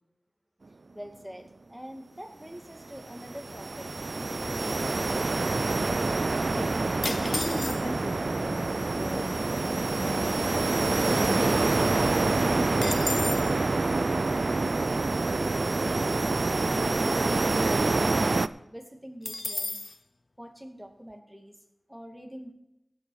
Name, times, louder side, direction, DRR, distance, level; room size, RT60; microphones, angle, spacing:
voice 1, 0.9-5.8 14.9-15.6 15.9-19.8 20.4-21.5 21.9-22.5, equal, 5° right, 3 dB, 2.3 m, -45 dB
sound 1, 2.8-18.5, right 3 dB, 70° right, 0.4 m, -26 dB
sound 2, 7.0-8.1 8.9-9.0 9.2-9.5 10.0-11.5 11.8-11.9 12.2-13.6 19.2-20.0, left 2 dB, 60° left, 0.3 m, -34 dB
voice 2, 7.1-10.8 11.2-14.1, left 1 dB, 15° left, 4 dB, 1.0 m, -38 dB
17.5 x 6.9 x 4.8 m, 0.86 s
wide cardioid pair, 50°, 0 cm